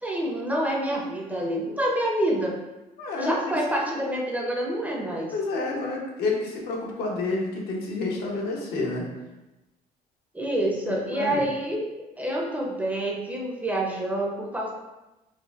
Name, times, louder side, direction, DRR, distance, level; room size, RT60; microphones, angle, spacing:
voice 1, 0.0-2.6 3.2-5.3 10.3-11.9 12.2-14.7, right 1 dB, 10° right, -2 dB, 0.5 m, -27 dB
voice 2, 3.0-3.5 3.9-4.1 5.3-9.0 10.9-11.4, left 3 dB, 75° left, -2 dB, 0.9 m, -29 dB
4.1 x 2.5 x 2.4 m, 1.0 s
cardioid pair, 110°, 17 cm